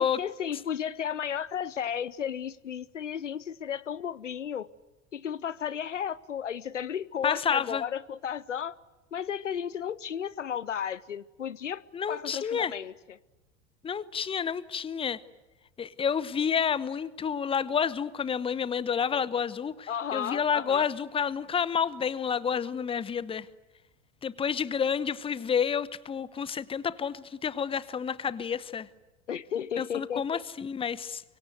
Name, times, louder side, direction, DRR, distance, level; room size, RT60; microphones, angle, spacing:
voice 1, 0.0-4.7 5.1-8.8 9.1-11.8 12.1-13.2 19.9-20.8 29.3-30.4, left 8 dB, 75° left, 0.8 m, -34 dB
voice 2, 7.2-7.8 11.9-12.7 13.8-15.2 15.8-23.5 24.2-28.9 29.8-31.2, left 7 dB, 15° left, 1.0 m, -29 dB
24.5 x 24.0 x 9.4 m
figure-of-eight pair, 80°, 37 cm